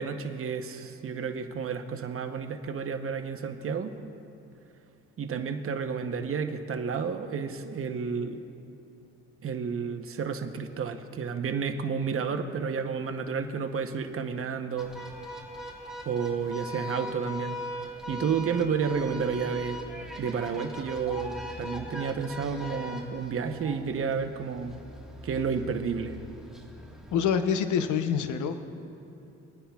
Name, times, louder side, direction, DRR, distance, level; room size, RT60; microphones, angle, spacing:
voice 1, 0.0-3.9 5.2-8.4 9.4-14.9 16.0-17.6 18.1-19.8 20.2-24.7 25.2-26.1, right 6 dB, 45° right, 6 dB, 0.9 m, -31 dB
sound 1, 14.8-27.1, equal, ahead, 1.5 m, -40 dB
voice 2, 27.1-28.6, left 7 dB, 75° left, 9 dB, 0.7 m, -26 dB
21.5 x 9.8 x 2.3 m, 2.9 s
cardioid pair, 90°, 30 cm